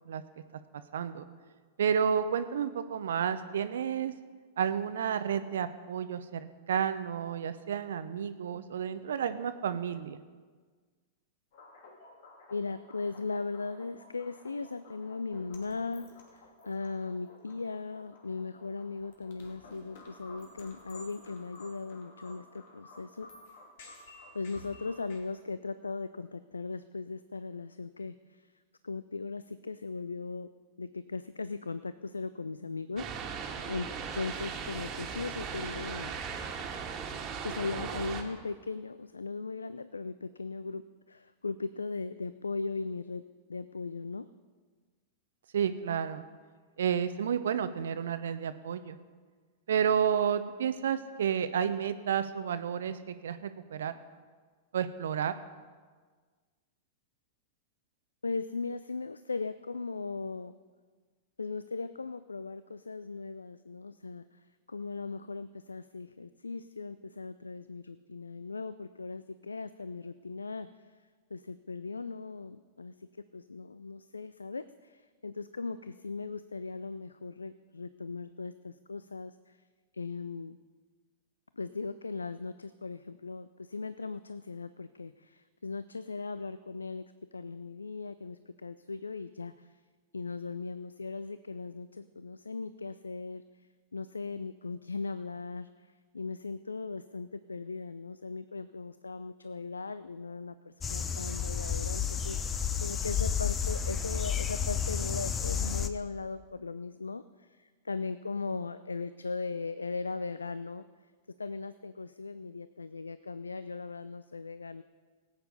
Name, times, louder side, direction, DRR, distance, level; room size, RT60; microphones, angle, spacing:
voice 1, 0.9-1.2 1.8-4.1 4.6-10.2 45.5-46.2 46.8-49.0 49.7-53.9 54.7-55.3, right 8 dB, 65° right, 11 dB, 0.7 m, -31 dB
sound 1, 11.5-25.2, left 2 dB, 55° left, 2.3 m, -54 dB
voice 2, 12.5-23.3 24.0-28.5 28.8-30.5 30.8-36.1 37.4-43.2 43.5-44.3 58.2-60.5 61.4-64.4 64.7-70.7 71.3-73.1 73.3-79.6 79.9-80.6 81.6-87.1 87.3-89.8 90.1-93.4 93.9-110.8 111.4-114.8, left 4 dB, 80° left, 14 dB, 0.4 m, -38 dB
sound 2, 33.0-38.2, right 6 dB, 30° right, 1.8 m, -38 dB
sound 3, 100.8-105.9, left 7 dB, 20° left, 0.8 m, -31 dB
18.0 x 8.9 x 5.4 m, 1.5 s
figure-of-eight pair, 95°, 0 cm